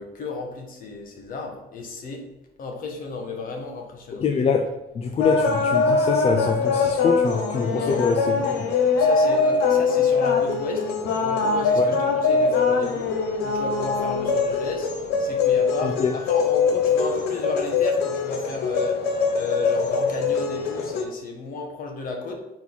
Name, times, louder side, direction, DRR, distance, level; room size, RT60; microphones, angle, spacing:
voice 1, 0.0-2.3 2.6-4.2 7.7-8.1 8.9-10.9 11.2-14.9 15.2-22.3, left 4 dB, 55° left, 2 dB, 1.4 m, -33 dB
voice 2, 4.2-8.6 11.8-11.9 15.8-16.1, left 5 dB, 35° left, 4 dB, 0.5 m, -24 dB
sound 1, 5.2-21.0, left 4 dB, 80° left, 1.0 m, -22 dB
4.5 x 4.1 x 5.5 m, 0.99 s
cardioid pair, 110°, 17 cm